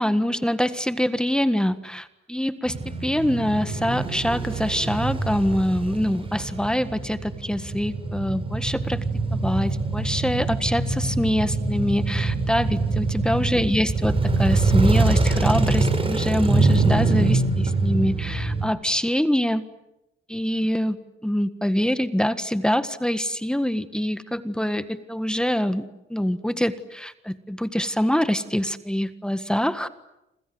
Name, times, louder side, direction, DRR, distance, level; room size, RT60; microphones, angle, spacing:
voice 1, 0.0-9.0 9.3-19.6 20.3-25.8 26.1-29.9, equal, 5° left, 12 dB, 1.6 m, -25 dB
Male speech man speaking / Motorcycle / Idling, 2.7-18.7, right 3 dB, 25° right, 6.8 m, -24 dB
28.0 x 27.0 x 7.8 m, 0.89 s
cardioid pair, 90°, 20 cm